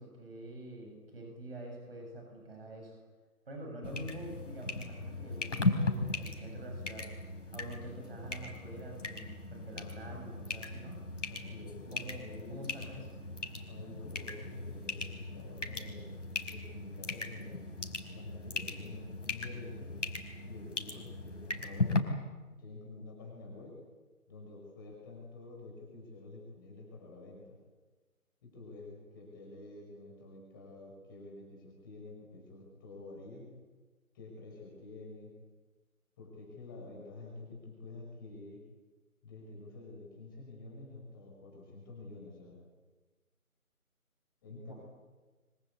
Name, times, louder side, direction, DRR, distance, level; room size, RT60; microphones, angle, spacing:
voice 1, 0.0-3.0 3.5-7.1 7.5-11.0 11.9-12.2 12.5-13.2 44.5-44.8, right 1 dB, 40° right, 1 dB, 7.4 m, -46 dB
sound 1, 3.8-22.0, left 3 dB, 55° left, 4.7 m, -38 dB
voice 2, 11.3-12.6 13.7-16.1 16.5-17.7 18.1-19.9 20.5-22.1 22.6-23.8 24.3-27.6 28.4-33.5 34.1-35.3 36.2-38.6 39.2-42.6 44.4-44.7, left 2 dB, 15° left, -1 dB, 5.3 m, -49 dB
26.0 x 24.5 x 8.5 m, 1.3 s
figure-of-eight pair, 165°, 44 cm